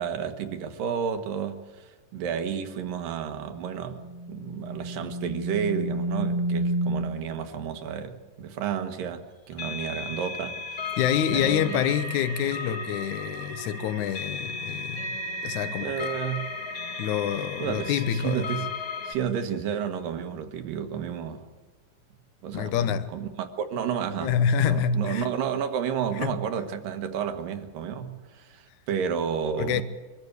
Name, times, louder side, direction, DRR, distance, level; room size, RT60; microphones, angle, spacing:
voice 1, 0.0-11.0 11.3-11.9 15.8-16.5 17.6-18.7 19.1-21.5 22.4-29.8, right 7 dB, 80° right, 3.0 m, -31 dB
sound 1, 3.4-7.3, right 1 dB, 55° left, 3.0 m, -30 dB
sound 2, 9.5-19.1, left 3 dB, 35° left, 1.7 m, -35 dB
voice 2, 11.0-16.1 17.0-18.5 22.5-23.1 24.2-25.3 26.2-26.3 29.6-29.8, left 9 dB, 70° left, 2.2 m, -27 dB
23.5 x 14.5 x 8.2 m
omnidirectional pair, 3.9 m